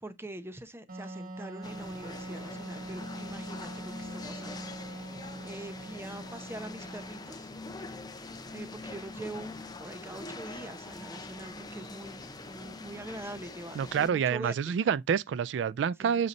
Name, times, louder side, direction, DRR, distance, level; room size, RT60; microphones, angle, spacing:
voice 1, 0.0-4.7 5.4-7.5 8.5-14.7 16.0-16.2, right 1 dB, 15° right, 0.7 m, -44 dB
Wind instrument woodwind instrument, 0.9-7.3, right 1 dB, 50° right, 1.2 m, -43 dB
sound 1, 1.6-14.1, left 3 dB, 25° left, 0.7 m, -44 dB
voice 2, 13.7-16.3, right 7 dB, 85° right, 0.3 m, -28 dB
8.1 x 2.8 x 5.1 m
head